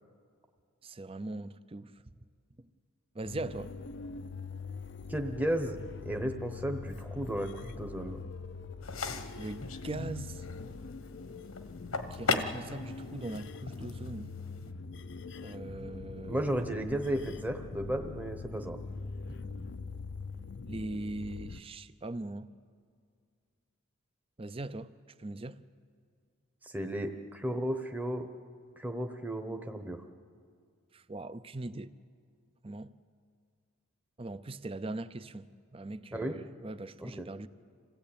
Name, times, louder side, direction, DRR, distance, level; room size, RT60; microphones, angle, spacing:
voice 1, 0.8-1.9 3.1-3.7 9.4-10.4 12.1-14.3 15.4-16.6 20.7-22.5 24.4-24.9 25.2-25.6 30.9-32.0 32.6-32.9 34.2-37.5, right 2 dB, 25° right, 0.5 m, -40 dB
sound 1, 3.2-21.6, left 4 dB, 55° left, 0.6 m, -43 dB
voice 2, 5.1-5.8 6.0-8.2 16.3-18.8 26.6-28.3 28.8-30.0 36.1-36.3 37.0-37.3, right 1 dB, 10° right, 0.9 m, -34 dB
sound 2, 8.8-14.7, left 4 dB, 80° left, 1.3 m, -38 dB
27.0 x 16.5 x 8.7 m
head